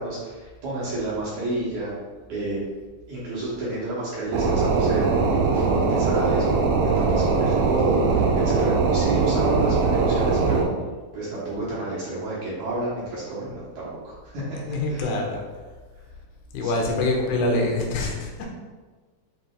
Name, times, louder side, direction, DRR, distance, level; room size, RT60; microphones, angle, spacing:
voice 1, 0.0-2.0 2.3-2.6 3.1-10.6 11.1-15.2 16.6-16.9, right 2 dB, 65° right, -9 dB, 2.1 m, -30 dB
sound 1, 4.3-10.6, right 4 dB, 85° right, 2.0 m, -21 dB
voice 2, 14.6-15.4 16.5-18.5, left 2 dB, 85° left, 0 dB, 2.7 m, -25 dB
7.6 x 2.7 x 2.3 m, 1.4 s
omnidirectional pair, 4.5 m